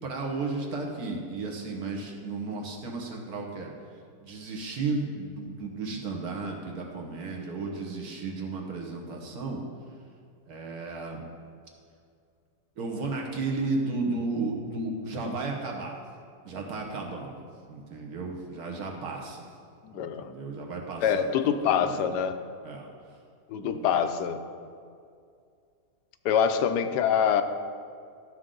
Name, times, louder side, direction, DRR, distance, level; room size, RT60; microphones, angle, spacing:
voice 1, 0.0-3.7 4.2-9.6 10.5-11.2 12.8-16.0 16.4-17.4 17.7-19.5 20.0-22.0 22.6-22.9 23.6-23.9, right 3 dB, 65° right, 0 dB, 1.6 m, -34 dB
voice 2, 19.8-20.3 21.0-22.4 23.5-24.4 26.2-27.4, left 8 dB, 80° left, 9 dB, 1.2 m, -25 dB
12.5 x 6.4 x 3.8 m, 2.3 s
omnidirectional pair, 1.8 m